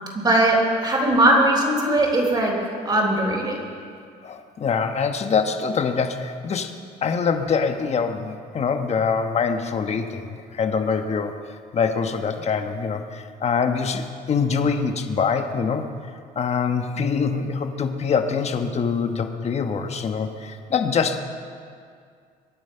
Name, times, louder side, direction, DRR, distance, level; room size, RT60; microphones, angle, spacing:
voice 1, 0.1-2.5 2.8-3.6, right 1 dB, 25° right, -1 dB, 3.9 m, -19 dB
voice 2, 4.2-11.4 11.7-15.9 16.3-21.2, left 5 dB, 40° left, 6 dB, 1.2 m, -24 dB
24.0 x 9.3 x 5.7 m, 2.2 s
cardioid pair, 110°, 17 cm